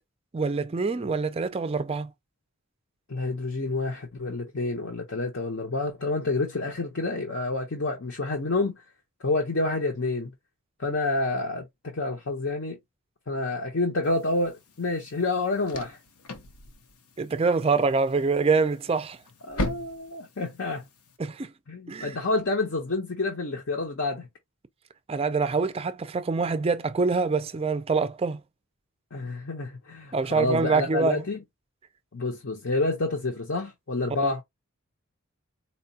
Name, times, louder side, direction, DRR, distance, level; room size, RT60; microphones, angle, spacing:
voice 1, 0.3-2.1 17.2-19.2 21.2-21.5 21.9-22.1 25.1-28.4 30.1-31.2 34.2-34.3, right 4 dB, 25° right, 0.4 m, -25 dB
voice 2, 3.1-8.8 9.2-10.3 10.8-12.8 13.3-16.0 19.5-20.8 21.7-24.3 29.1-31.4 32.1-34.4, left 2 dB, 60° left, 0.7 m, -28 dB
sound 1, 14.0-21.2, left 1 dB, 90° left, 0.8 m, -39 dB
4.1 x 2.3 x 2.7 m
head